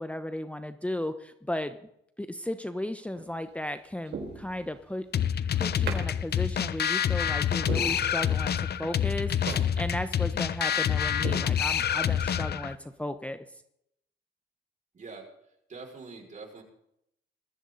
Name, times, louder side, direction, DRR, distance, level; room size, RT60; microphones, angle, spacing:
voice 1, 0.0-1.8 2.2-5.1 5.6-13.6, left 1 dB, 5° left, 10 dB, 1.0 m, -35 dB
sound 1, 3.1-3.5 4.1-5.0 5.9-6.1 6.5-6.6 7.1-7.2 7.7-8.6 8.9-9.0 9.5-9.7 10.1-10.2 10.7-10.8 11.2-12.1 12.5-12.6, right 5 dB, 55° right, 4.3 m, -38 dB
sound 2, 5.1-12.8, left 9 dB, 55° left, 0.9 m, -27 dB
voice 2, 14.9-15.2 15.7-16.6, right 4 dB, 40° right, 1 dB, 5.9 m, -44 dB
21.0 x 14.5 x 4.1 m, 0.76 s
cardioid pair, 90°, 20 cm